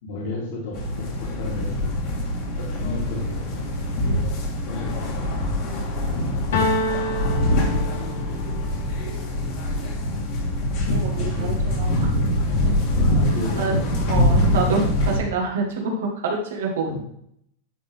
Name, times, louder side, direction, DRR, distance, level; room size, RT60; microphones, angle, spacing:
voice 1, 0.0-2.0 2.6-3.5 4.6-5.4 11.1-11.6 12.9-14.1 16.8-17.0, left 2 dB, 60° left, -5 dB, 2.5 m, -33 dB
sound 1, 0.7-15.2, left 1 dB, 40° left, 1.8 m, -24 dB
voice 2, 6.0-6.4 10.9-12.1 12.6-12.8 13.3-13.8 14.1-17.0, right 4 dB, 90° right, 0 dB, 1.7 m, -27 dB
sound 2, 6.5-8.5, left 1 dB, 85° left, 1.6 m, -26 dB
10.5 x 4.0 x 3.6 m, 0.72 s
supercardioid pair, 165°, 0 cm